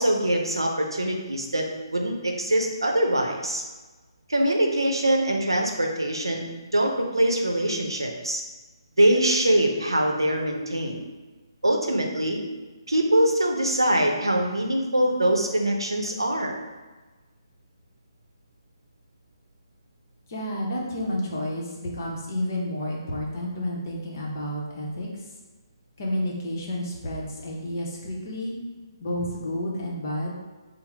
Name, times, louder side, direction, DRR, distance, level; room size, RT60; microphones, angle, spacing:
voice 1, 0.0-1.6 1.9-3.6 4.3-6.4 6.7-8.4 9.0-11.0 11.6-12.4 12.9-16.5, right 1 dB, 75° right, 2 dB, 0.6 m, -23 dB
voice 2, 20.3-25.1 26.0-28.5 29.0-30.3, left 1 dB, 40° left, -2 dB, 0.9 m, -30 dB
5.8 x 2.0 x 3.3 m, 1.2 s
figure-of-eight pair, 140°, 2 cm